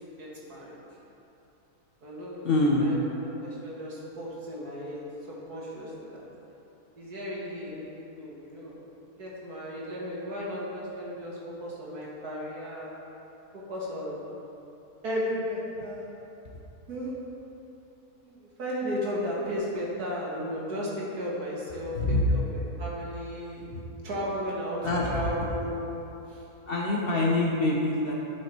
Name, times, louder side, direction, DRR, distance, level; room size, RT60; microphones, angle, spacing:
voice 1, 0.2-0.8 2.0-3.0 3.4-6.2 7.0-7.9 8.2-8.8 9.1-12.9 13.7-14.2 15.0-16.1 16.9-17.1 18.2-22.0 22.3-23.6 24.0-24.8 25.1-25.9 26.3-26.4, equal, 75° right, -5 dB, 2.1 m, -35 dB
voice 2, 2.4-2.9 21.9-22.2 23.7-23.8 24.8-25.2 26.7-28.1, left 2 dB, 45° left, -3 dB, 0.9 m, -25 dB
11.0 x 5.2 x 4.4 m, 2.9 s
omnidirectional pair, 1.6 m